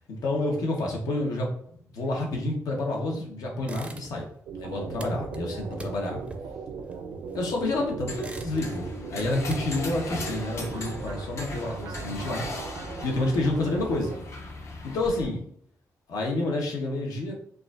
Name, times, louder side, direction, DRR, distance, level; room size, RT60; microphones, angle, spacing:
voice 1, 0.1-1.5 1.9-4.3 4.6-6.2 7.3-12.5 13.0-14.2 14.8-15.5 16.1-17.3, left 2 dB, 85° left, 0 dB, 0.9 m, -29 dB
sound 1, 3.6-4.4 4.6-7.6 8.0-8.9 9.2-10.6, right 2 dB, 20° right, 0.4 m, -42 dB
sound 2, 4.5-14.2, right 5 dB, 85° right, 0.5 m, -38 dB
sound 3, 8.1-15.3, left 2 dB, 50° left, 0.6 m, -39 dB
4.7 x 2.4 x 2.4 m, 0.64 s
wide cardioid pair, 140°, 6 cm